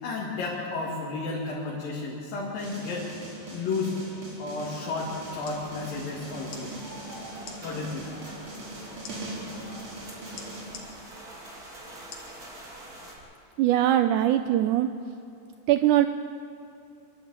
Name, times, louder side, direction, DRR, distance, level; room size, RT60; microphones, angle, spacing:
voice 1, 0.0-3.1 3.5-4.0 4.4-6.7 7.6-8.1, left 3 dB, 75° left, -4 dB, 3.9 m, -32 dB
sound 1, 2.6-10.6, right 1 dB, 45° right, 5.1 m, -41 dB
sound 2, 5.0-13.2, right 1 dB, 25° right, 3.1 m, -45 dB
sound 3, 5.4-5.6 6.5-6.7 7.4-7.6 9.0-9.2 10.4-10.9 12.1-12.3 12.9-13.0, left 5 dB, 50° left, 3.0 m, -43 dB
voice 2, 13.6-14.9 15.7-16.1, right 12 dB, 80° right, 9 dB, 1.8 m, -21 dB
26.0 x 12.0 x 8.8 m, 2.7 s
omnidirectional pair, 4.1 m